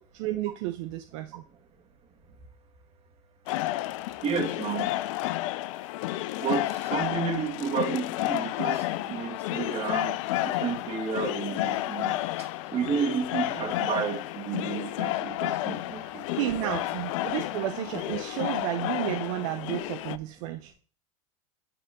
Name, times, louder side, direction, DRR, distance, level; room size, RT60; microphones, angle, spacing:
voice 1, 0.1-1.4 16.4-20.7, right 14 dB, 65° right, 7 dB, 0.6 m, -32 dB
sound 1, 3.5-20.2, left 16 dB, 65° left, 0.4 m, -31 dB
voice 2, 4.2-4.9 6.4-10.2 10.4-12.2 12.7-16.7, right 7 dB, 35° right, 3 dB, 1.8 m, -31 dB
9.6 x 3.6 x 3.5 m, 0.41 s
hypercardioid pair, 110°, 17 cm